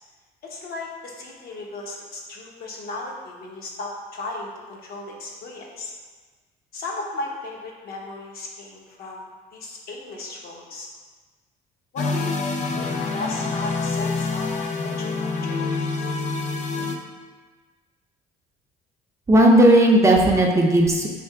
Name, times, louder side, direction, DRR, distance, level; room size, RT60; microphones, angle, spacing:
voice 1, 0.4-5.9 6.7-10.9 11.9-12.4 12.7-14.4 14.8-15.6, left 2 dB, 65° left, -1 dB, 0.9 m, -35 dB
sound 1, 12.0-17.0, left 3 dB, 45° left, 0.5 m, -26 dB
voice 2, 19.3-21.1, right 1 dB, 15° right, -1 dB, 0.5 m, -15 dB
3.4 x 2.8 x 4.6 m, 1.4 s
cardioid pair, 110°, 17 cm